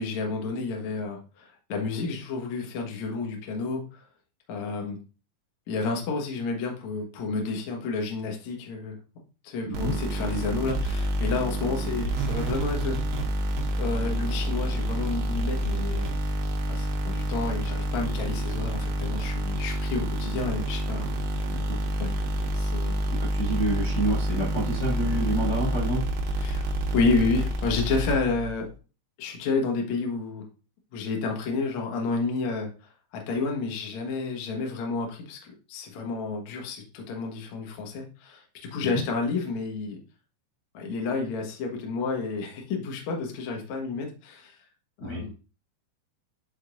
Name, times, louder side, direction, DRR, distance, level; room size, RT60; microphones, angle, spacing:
voice 1, 0.0-4.0 4.5-5.0 5.7-9.0 9.4-13.0 13.8-16.1 16.7-21.1 22.0-22.1 22.5-23.0 26.4-26.7 26.9-28.7 29.2-30.4 30.9-32.7 33.1-40.0 40.7-44.5 45.0-45.3, left 4 dB, 70° left, 1 dB, 1.7 m, -30 dB
sound 1, 9.7-28.5, right 1 dB, 75° right, 3.3 m, -28 dB
voice 2, 23.2-26.0 38.8-39.0 45.0-45.2, right 1 dB, 35° left, -6 dB, 2.1 m, -28 dB
10.5 x 5.1 x 2.6 m, 0.35 s
omnidirectional pair, 5.5 m